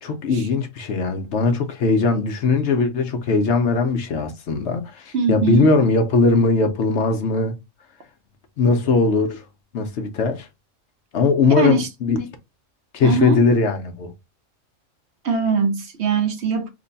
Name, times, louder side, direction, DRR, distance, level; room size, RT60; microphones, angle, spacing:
voice 1, 0.0-7.5 8.6-9.4 9.7-10.5 11.1-12.2 12.9-14.1, left 3 dB, 65° left, 0.9 m, -20 dB
voice 2, 5.1-5.7 11.6-11.9 13.0-13.4 15.2-16.7, right 4 dB, 60° right, 0.9 m, -21 dB
3.1 x 2.2 x 3.9 m
omnidirectional pair, 1.3 m